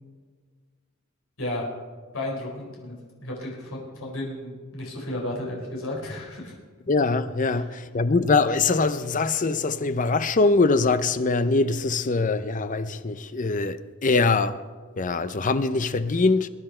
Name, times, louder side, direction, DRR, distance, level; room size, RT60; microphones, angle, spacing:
voice 1, 2.1-6.5, left 1 dB, 70° left, 4.3 m, -33 dB
voice 2, 6.9-14.6 15.0-16.5, left 3 dB, 35° left, 0.6 m, -23 dB
22.0 x 10.0 x 4.4 m
head